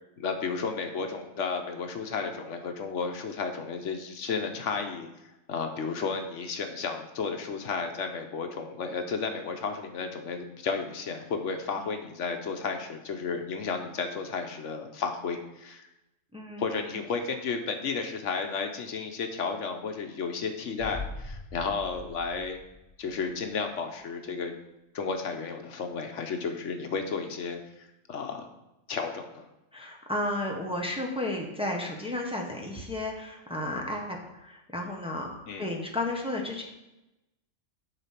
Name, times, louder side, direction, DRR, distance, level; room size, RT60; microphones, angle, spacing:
voice 1, 0.2-5.1 5.5-15.9 16.6-22.6 23.0-24.5 24.9-28.5 28.9-29.5 35.5-35.7, left 5 dB, 75° left, 5 dB, 1.2 m, -33 dB
voice 2, 16.3-16.9 29.7-35.3 35.6-36.6, left 1 dB, 5° right, -1 dB, 1.2 m, -33 dB
sound 1, 20.8-23.5 23.8-23.9, left 3 dB, 35° left, 0.4 m, -42 dB
9.9 x 4.2 x 5.8 m, 0.95 s
omnidirectional pair, 1.3 m